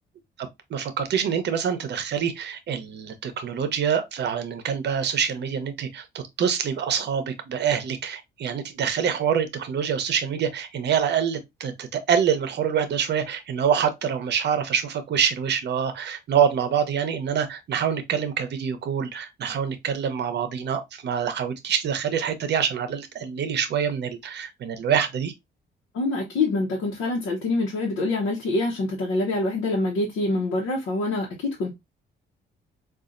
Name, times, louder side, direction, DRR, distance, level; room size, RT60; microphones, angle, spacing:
voice 1, 0.7-6.0 6.4-25.3, right 8 dB, 60° right, 0.7 m, -25 dB
voice 2, 25.9-31.7, left 2 dB, 85° left, 0.9 m, -25 dB
4.0 x 2.4 x 2.5 m
cardioid pair, 90°, 20 cm